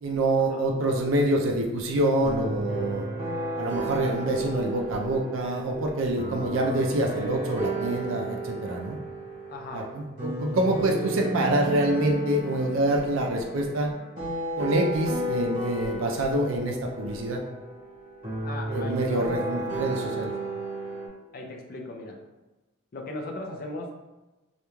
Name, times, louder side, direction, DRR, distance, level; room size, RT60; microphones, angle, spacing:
voice 1, 0.0-3.1 3.6-9.0 9.7-13.9 14.6-17.4 18.7-20.3, right 1 dB, 70° right, 1 dB, 0.4 m, -26 dB
sound 1, 2.2-21.1, right 1 dB, 40° right, 1.0 m, -33 dB
voice 2, 9.5-9.9 18.4-19.3 21.3-22.2 22.9-23.9, left 2 dB, 45° left, 1 dB, 0.3 m, -37 dB
2.4 x 2.2 x 3.0 m, 1.1 s
head